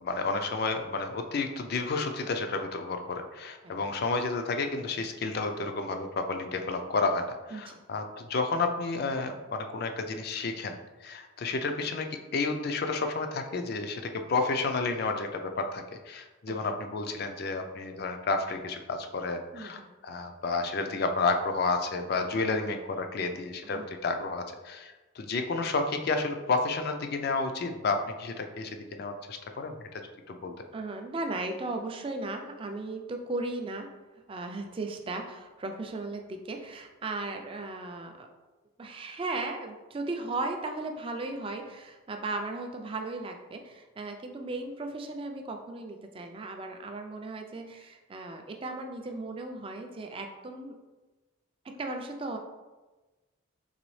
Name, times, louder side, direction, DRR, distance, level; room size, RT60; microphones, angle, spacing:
voice 1, 0.0-10.8 11.0-12.1 12.3-29.8 30.3-30.5, left 3 dB, 50° left, 6 dB, 0.4 m, -31 dB
voice 2, 7.5-7.8 16.5-16.7 19.5-19.9 23.6-23.9 30.7-33.9 34.3-38.3 38.8-50.8 51.6-52.4, right 2 dB, 25° right, 4 dB, 0.3 m, -36 dB
4.0 x 3.4 x 3.1 m, 1.2 s
head